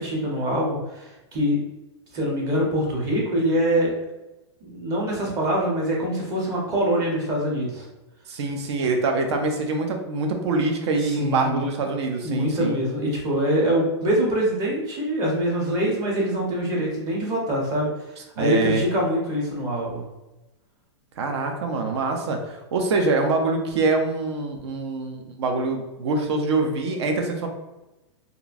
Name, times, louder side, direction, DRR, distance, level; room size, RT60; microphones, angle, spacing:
voice 1, 0.0-1.6 2.1-4.0 4.6-7.9 11.0-11.7 12.2-17.9 18.4-20.0, equal, 25° right, -3 dB, 0.8 m, -24 dB
voice 2, 8.3-12.8 18.4-18.8 21.2-27.5, right 3 dB, 65° right, 3 dB, 0.6 m, -24 dB
2.9 x 2.5 x 2.5 m, 0.99 s
supercardioid pair, 155°, 15 cm